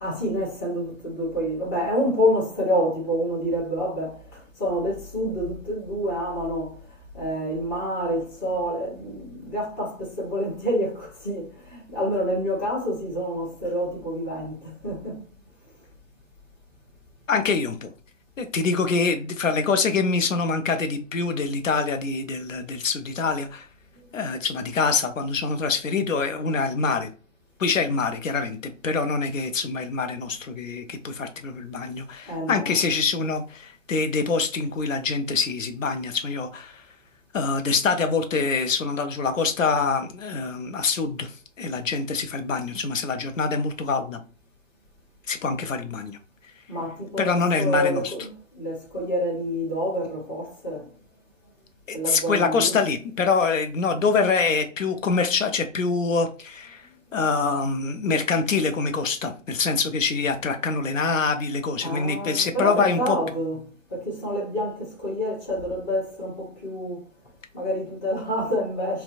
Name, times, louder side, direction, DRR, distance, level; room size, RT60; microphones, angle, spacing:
voice 1, 0.0-6.8 7.1-15.2 32.3-32.8 46.7-50.9 51.9-52.8 61.8-63.6 63.9-67.0 67.5-69.0, equal, 15° left, 0.7 m, -28 dB
voice 2, 17.3-17.9 18.4-23.7 24.1-27.1 27.6-36.9 37.3-44.2 45.3-46.2 47.2-48.1 51.9-63.2, left 4 dB, 85° left, 0.5 m, -25 dB
2.5 x 2.1 x 2.4 m
figure-of-eight pair, 135°, 38 cm